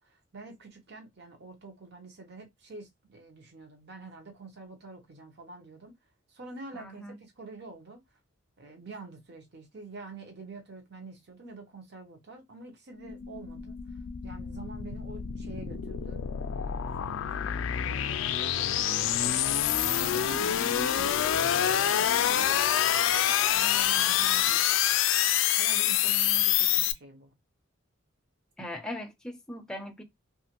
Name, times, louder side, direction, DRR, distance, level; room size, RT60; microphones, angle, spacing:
voice 1, 0.0-5.9 6.3-8.0 8.6-16.2 16.5-16.8 17.4-19.6 19.9-23.2 23.5-24.6 25.1-27.3, right 3 dB, 55° right, 0.8 m, -46 dB
voice 2, 6.7-7.2 28.6-30.0, left 1 dB, 5° left, 0.4 m, -39 dB
sound 1, 13.0-26.9, left 10 dB, 70° left, 0.3 m, -27 dB
2.8 x 2.4 x 2.9 m
head